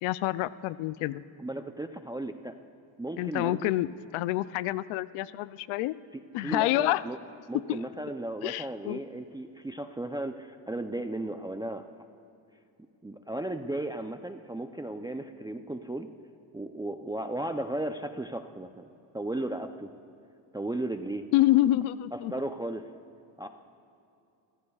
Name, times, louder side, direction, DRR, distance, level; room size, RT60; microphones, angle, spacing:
voice 1, 0.0-1.2 3.2-6.0 6.3-7.0 7.7-7.8 8.4-9.0 21.3-22.3, left 15 dB, 90° left, 16 dB, 0.6 m, -27 dB
voice 2, 1.4-2.6 3.0-3.7 6.1-7.2 7.5-11.9 13.0-16.1 16.5-18.8 19.1-19.9 20.5-21.3 22.1-22.8 23.4-23.5, right 1 dB, 10° right, 7 dB, 0.5 m, -35 dB
30.0 x 15.0 x 2.4 m, 2.7 s
cardioid pair, 90°, 48 cm